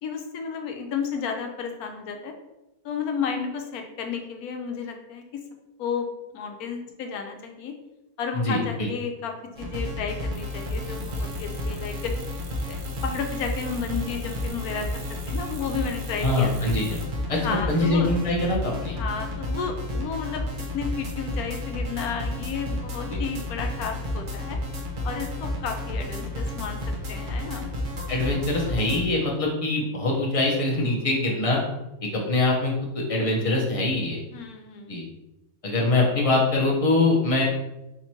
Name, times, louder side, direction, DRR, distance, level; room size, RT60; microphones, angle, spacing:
voice 1, 0.0-2.3 2.8-5.4 5.8-6.1 6.3-7.7 8.2-12.1 12.7-16.5 17.3-18.2 19.0-20.5 20.7-24.6 25.0-26.8 27.1-27.7 34.3-35.0 35.9-36.1, left 6 dB, 75° left, 4 dB, 1.1 m, -32 dB
voice 2, 8.3-8.9 16.2-17.0 17.3-17.4 17.7-19.0 23.1-23.2 28.1-31.6 32.1-34.2 34.9-35.0 35.6-37.4, left 2 dB, 30° left, -2 dB, 0.7 m, -23 dB
sound 1, 9.6-29.0, left 1 dB, 45° right, 0.7 m, -31 dB
sound 2, 10.3-17.1, right 5 dB, 85° right, 1.2 m, -45 dB
3.5 x 2.9 x 4.4 m, 0.95 s
omnidirectional pair, 1.6 m